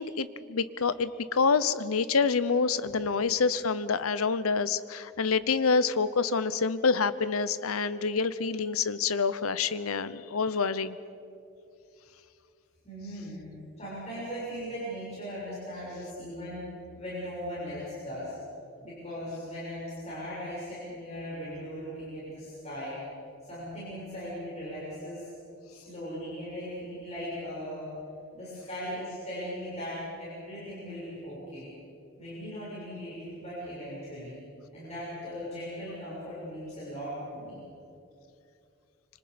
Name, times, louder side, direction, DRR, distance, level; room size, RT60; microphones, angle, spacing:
voice 1, 0.0-11.0, left 5 dB, 85° left, 15 dB, 0.8 m, -27 dB
voice 2, 12.8-16.6 16.9-18.3 18.8-23.0 23.4-25.3 25.7-27.9 28.3-31.7 32.2-34.4 34.7-37.6, equal, 30° left, -9 dB, 6.7 m, -38 dB
26.0 x 25.5 x 5.2 m, 2.6 s
head